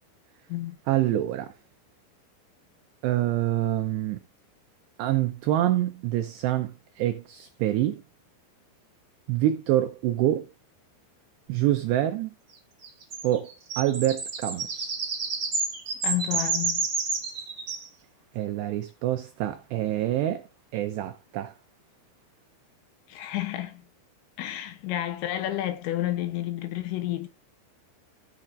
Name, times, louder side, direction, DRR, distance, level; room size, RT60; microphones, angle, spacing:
voice 1, 0.9-1.5 3.0-4.2 5.0-8.0 9.3-10.5 11.5-12.4 13.2-14.9 18.3-20.5 20.7-21.5, right 13 dB, 90° right, 2.4 m, -26 dB
sound 1, 12.8-17.9, right 4 dB, 40° right, 2.0 m, -30 dB
voice 2, 16.0-16.9 23.1-23.8 24.4-27.3, left 13 dB, 80° left, 3.0 m, -30 dB
15.0 x 7.1 x 2.5 m
omnidirectional pair, 5.8 m